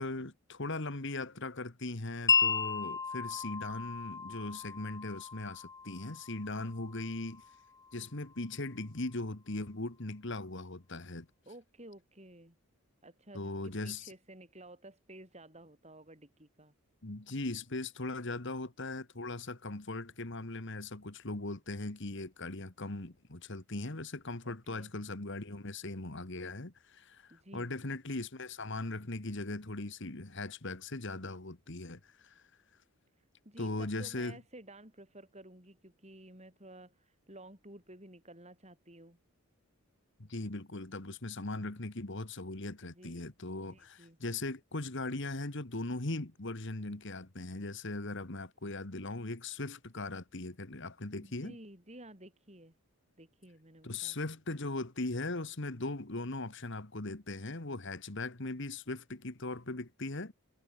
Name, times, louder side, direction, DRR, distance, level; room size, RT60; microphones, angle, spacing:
voice 1, 0.0-7.4 7.9-11.3 13.3-14.1 17.0-32.4 33.6-34.4 40.2-51.6 53.8-60.3, left 2 dB, 55° left, 1.8 m, -39 dB
Wind chime, 2.3-8.4, left 5 dB, 15° left, 0.7 m, -34 dB
voice 2, 11.5-12.6 13.0-16.7 24.4-24.9 27.3-27.7 33.2-39.2 42.8-43.3 43.6-44.2 51.2-52.7 53.2-54.2, right 1 dB, 30° right, 7.3 m, -53 dB
head